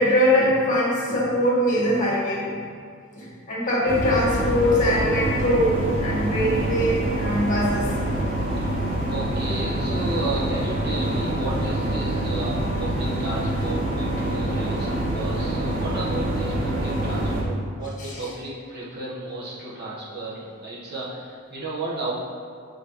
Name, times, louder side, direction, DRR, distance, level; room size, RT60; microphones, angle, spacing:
voice 1, 0.0-2.5 3.1-7.9 18.0-18.1, equal, 40° left, -6 dB, 1.6 m, -22 dB
sound 1, 3.9-17.4, right 1 dB, 85° right, 1.6 m, -26 dB
voice 2, 9.1-22.1, right 2 dB, 50° right, -7 dB, 1.4 m, -33 dB
8.0 x 4.7 x 3.1 m, 2.2 s
head